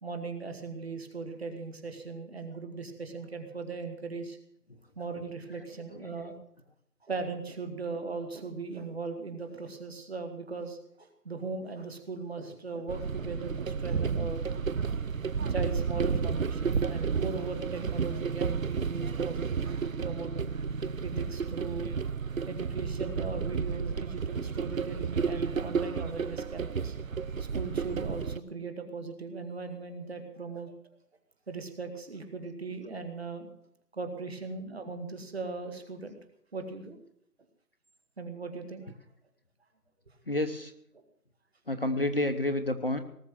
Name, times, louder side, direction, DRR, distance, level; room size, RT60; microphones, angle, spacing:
voice 1, 0.0-4.4 5.0-6.4 7.0-14.4 15.5-20.5 21.0-21.9 22.5-26.9 27.4-30.7 31.5-33.5 33.9-36.2 36.5-37.0 38.2-38.9, right 4 dB, 40° right, 6 dB, 2.2 m, -38 dB
sound 1, 12.9-28.4, right 5 dB, 60° right, 0.6 m, -32 dB
voice 2, 40.3-40.7 41.7-43.0, left 1 dB, 35° left, 8 dB, 0.9 m, -29 dB
18.5 x 7.1 x 9.2 m, 0.71 s
figure-of-eight pair, 170°, 48 cm